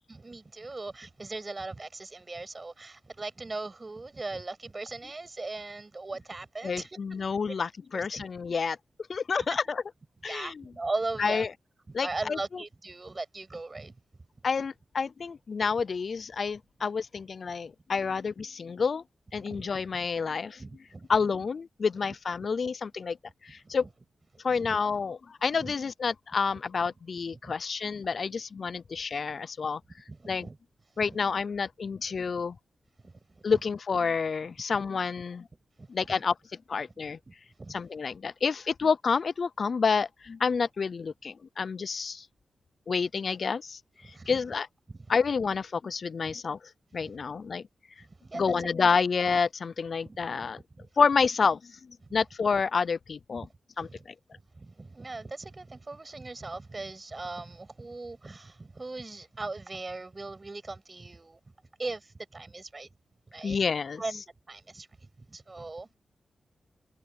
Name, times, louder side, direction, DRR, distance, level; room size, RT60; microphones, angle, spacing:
voice 1, 0.1-7.2 7.9-8.2 9.4-9.7 10.2-11.5 11.9-14.0 19.3-19.7 20.6-21.2 22.0-22.2 23.6-23.9 24.5-24.8 25.6-25.7 27.3-27.5 30.1-30.6 31.0-31.2 33.0-33.6 35.8-36.2 37.0-37.8 44.0-44.4 44.9-45.1 46.2-46.4 47.0-47.1 48.0-48.7 50.0-50.5 50.8-50.9 52.1-52.2 53.3-53.5 53.8-54.0 54.3-61.4 61.8-62.9 63.3-63.6 64.0-66.0, right 3 dB, 35° right, 6.2 m, -39 dB
voice 2, 6.6-8.8 9.1-9.8 10.2-10.6 11.2-11.5 11.9-12.6 14.4-19.0 19.3-20.6 21.1-23.2 23.5-23.9 24.4-29.8 30.3-30.5 31.0-32.5 33.4-35.4 35.9-36.3 36.7-37.2 37.7-42.2 42.9-43.8 44.3-44.7 45.1-46.6 46.9-47.6 48.3-50.6 51.0-51.6 52.1-53.5 53.8-53.9 63.4-64.2, left 5 dB, 60° left, 0.4 m, -29 dB
cardioid pair, 70°, 0 cm